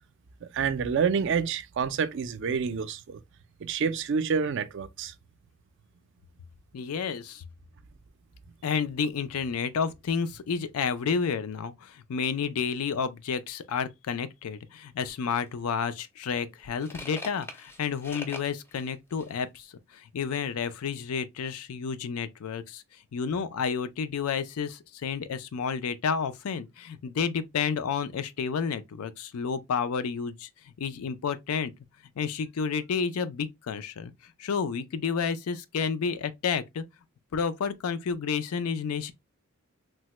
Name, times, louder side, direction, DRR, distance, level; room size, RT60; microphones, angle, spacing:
voice 1, 0.4-3.2 3.6-5.1, right 6 dB, 55° right, 0.4 m, -28 dB
voice 2, 6.7-7.4 8.6-19.7 19.9-22.8 23.1-30.5 30.8-31.7 32.2-36.8 37.3-39.1, left 6 dB, 80° left, 0.4 m, -30 dB
sound 1, 15.5-15.6 16.2-19.4, left 2 dB, 10° left, 0.4 m, -43 dB
3.3 x 2.1 x 2.9 m
head